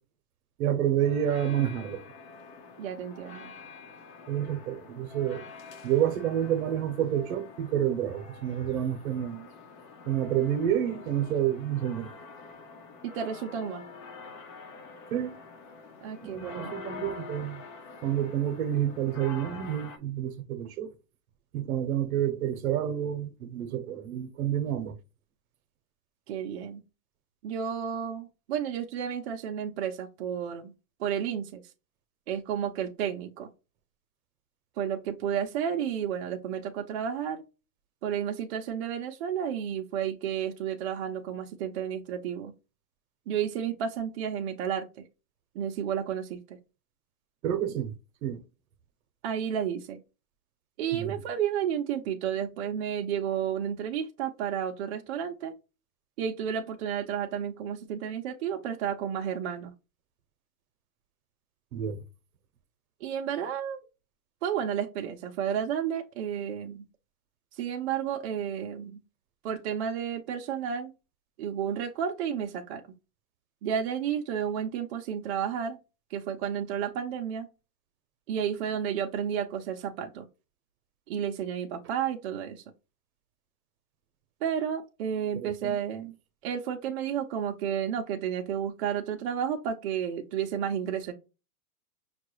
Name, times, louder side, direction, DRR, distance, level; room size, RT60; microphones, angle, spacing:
voice 1, 0.6-2.0 4.3-5.5 5.8-9.5 10.1-12.1 15.1-15.4 16.2-17.6 18.0-20.9 21.5-24.9 47.4-47.9 48.2-48.4 50.9-51.2 61.7-62.0 85.3-85.8, right 10 dB, 65° right, 0.9 m, -29 dB
sound 1, 1.0-20.0, left 4 dB, 60° left, 1.0 m, -46 dB
voice 2, 2.8-3.5 13.0-13.8 16.0-16.7 26.3-26.8 27.4-30.7 31.0-31.6 32.3-33.5 34.8-37.4 38.0-42.5 43.3-45.0 45.5-46.6 49.2-50.0 50.8-55.5 56.2-59.7 63.0-63.8 64.4-66.9 67.6-69.0 69.4-70.9 71.4-72.8 73.6-75.8 76.1-77.5 78.3-80.2 81.1-82.6 84.4-86.1 86.4-91.1, right 8 dB, 45° right, 0.6 m, -32 dB
5.8 x 2.3 x 3.0 m
supercardioid pair, 155°, 46 cm